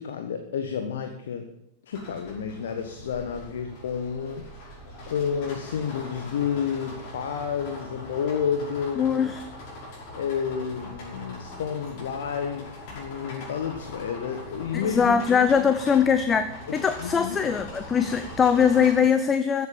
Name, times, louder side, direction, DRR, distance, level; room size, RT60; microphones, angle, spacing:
voice 1, 0.0-1.5 1.8-4.5 5.1-9.2 10.1-15.2 16.7-17.4, left 7 dB, 60° left, 6 dB, 1.3 m, -30 dB
sound 1, 1.9-18.9, left 1 dB, 45° left, 5.7 m, -41 dB
voice 2, 9.0-9.4 14.9-19.7, left 7 dB, 20° left, 10 dB, 0.8 m, -22 dB
14.5 x 8.2 x 7.2 m, 0.83 s
figure-of-eight pair, 90°, 0 cm